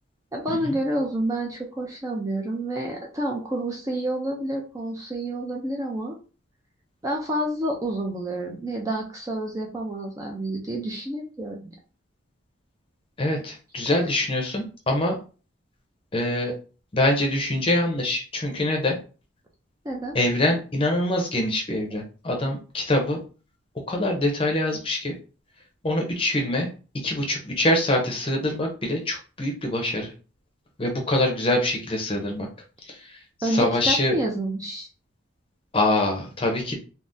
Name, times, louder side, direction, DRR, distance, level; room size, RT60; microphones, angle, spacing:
voice 1, 0.3-6.2 7.0-11.7 19.8-20.2 21.9-22.0 33.4-34.9, right 1 dB, 15° right, 0 dB, 0.4 m, -29 dB
voice 2, 13.2-15.2 16.1-16.5 16.9-19.0 20.1-23.2 23.9-25.1 25.8-26.7 27.0-30.1 30.8-32.5 32.9-34.2 35.7-36.8, left 1 dB, 25° left, 1 dB, 0.6 m, -24 dB
3.5 x 2.1 x 2.6 m, 0.36 s
head